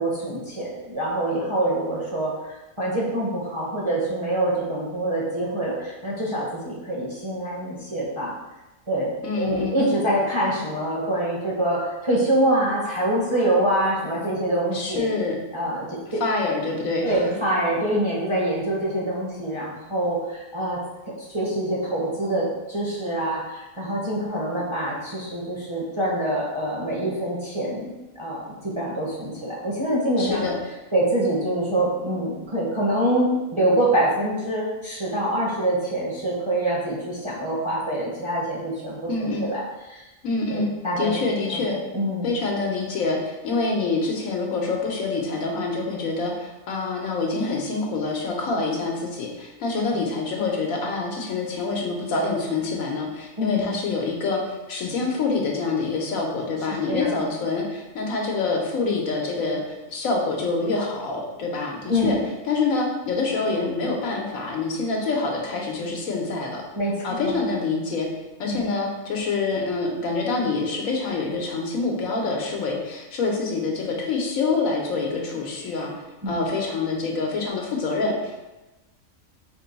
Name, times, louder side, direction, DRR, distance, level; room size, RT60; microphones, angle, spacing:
voice 1, 0.0-8.3 8.9-15.1 15.5-16.2 17.0-20.8 21.3-30.5 30.9-39.6 39.9-40.1 40.5-41.1 41.5-41.6 41.9-42.4 49.9-50.0 53.4-53.7 56.9-57.2 61.9-62.3 66.8-67.5 68.4-68.6 76.2-76.4, right 1 dB, 25° right, -6 dB, 0.7 m, -25 dB
voice 2, 9.2-9.8 14.7-15.3 16.2-17.3 30.2-30.6 39.1-39.4 40.2-40.7 41.0-41.8 42.2-62.2 62.4-66.6 67.0-68.1 68.4-75.9 76.3-78.4, left 3 dB, 80° left, 0 dB, 1.2 m, -26 dB
4.8 x 2.2 x 3.9 m, 1.1 s
omnidirectional pair, 1.4 m